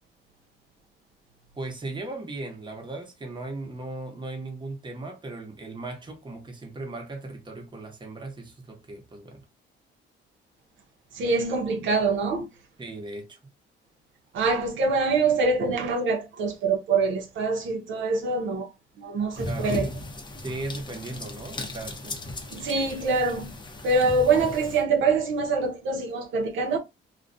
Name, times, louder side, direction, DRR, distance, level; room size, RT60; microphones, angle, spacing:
voice 1, 1.6-9.4 12.8-13.4 19.5-19.8 20.4-22.2, right 2 dB, 25° right, 0.9 m, -37 dB
voice 2, 11.1-12.5 14.3-18.7 19.0-19.9 22.5-23.5 23.8-26.8, right 3 dB, 75° right, 0.6 m, -24 dB
sound 1, 19.3-24.8, left 2 dB, 25° left, 0.6 m, -36 dB
2.4 x 2.1 x 2.5 m
cardioid pair, 90°, 20 cm